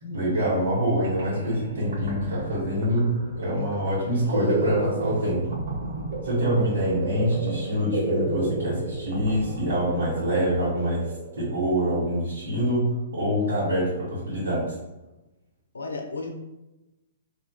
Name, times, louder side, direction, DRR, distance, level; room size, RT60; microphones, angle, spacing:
voice 1, 0.0-5.4 6.2-11.0 11.4-14.7, equal, 80° right, -10 dB, 1.3 m, -25 dB
sound 1, 0.7-0.8 1.0-11.6, right 3 dB, 60° right, 1.3 m, -32 dB
voice 2, 4.2-4.7 15.7-16.3, left 3 dB, 90° left, 2 dB, 0.6 m, -33 dB
3.1 x 2.6 x 2.2 m, 0.99 s
hypercardioid pair, 130°, 0 cm